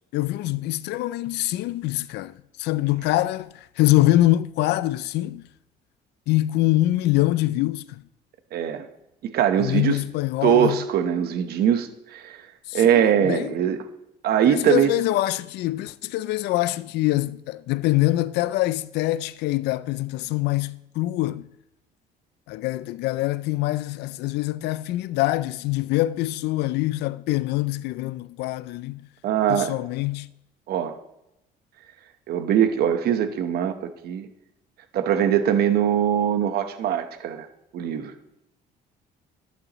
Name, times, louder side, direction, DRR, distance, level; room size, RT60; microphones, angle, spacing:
voice 1, 0.1-3.5 3.8-5.4 6.3-8.0 9.6-10.8 12.7-13.5 14.5-21.5 22.5-29.0 29.5-30.3, left 16 dB, 80° left, 0.5 m, -24 dB
voice 2, 8.5-8.9 9.2-10.0 10.4-12.4 12.7-13.8 14.2-14.9 29.2-29.7 30.7-31.0 32.3-34.3 34.9-37.5 37.7-38.1, right 9 dB, 70° right, 1.2 m, -22 dB
11.5 x 11.5 x 3.1 m
cardioid pair, 110°, 17 cm